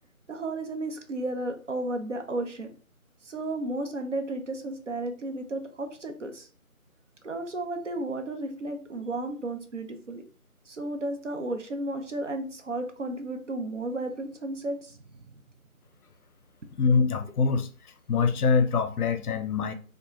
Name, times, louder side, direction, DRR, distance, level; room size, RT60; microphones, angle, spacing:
voice 1, 0.3-2.7 3.2-6.5 7.2-10.2 10.7-15.3, right 2 dB, 55° right, 0.5 m, -33 dB
voice 2, 16.8-17.7 18.1-19.7, left 5 dB, 85° left, 0.5 m, -24 dB
2.4 x 2.2 x 2.9 m
figure-of-eight pair, 170°, 44 cm